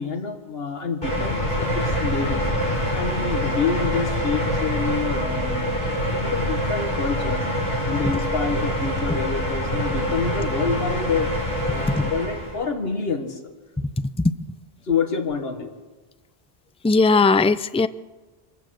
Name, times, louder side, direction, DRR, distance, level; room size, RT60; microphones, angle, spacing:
voice 1, 0.0-2.4 2.9-5.7 6.1-7.5 7.9-11.3 11.7-13.4 14.8-15.7, left 5 dB, 70° left, 5 dB, 1.9 m, -27 dB
sound 1, 1.0-12.6, equal, 55° left, 6.6 m, -25 dB
voice 2, 16.8-17.9, left 3 dB, 10° left, 13 dB, 0.3 m, -18 dB
24.5 x 14.5 x 7.8 m, 1.2 s
omnidirectional pair, 1.0 m